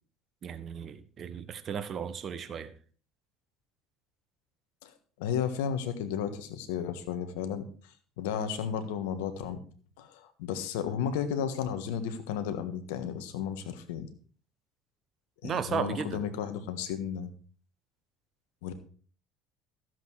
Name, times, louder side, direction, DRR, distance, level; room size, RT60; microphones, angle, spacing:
voice 1, 0.4-2.7 15.4-16.2, right 7 dB, 45° right, 12 dB, 1.2 m, -35 dB
voice 2, 4.8-7.7 8.2-9.6 10.0-14.1 15.4-17.3 18.6-18.7, left 8 dB, 75° left, 10 dB, 1.5 m, -33 dB
13.5 x 7.8 x 4.8 m, 0.43 s
hypercardioid pair, 65°, 0 cm